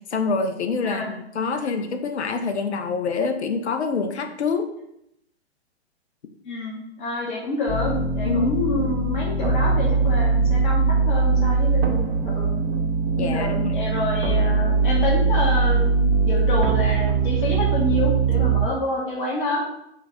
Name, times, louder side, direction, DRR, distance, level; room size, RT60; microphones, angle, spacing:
voice 1, 0.1-4.7 8.2-8.5 13.2-13.7, left 4 dB, 75° left, 7 dB, 0.5 m, -26 dB
voice 2, 6.4-12.6 13.2-19.6, left 2 dB, 45° left, -2 dB, 1.1 m, -28 dB
sound 1, 7.7-18.7, right 4 dB, 60° right, 0.6 m, -21 dB
4.5 x 2.2 x 3.1 m, 0.78 s
figure-of-eight pair, 115°, 34 cm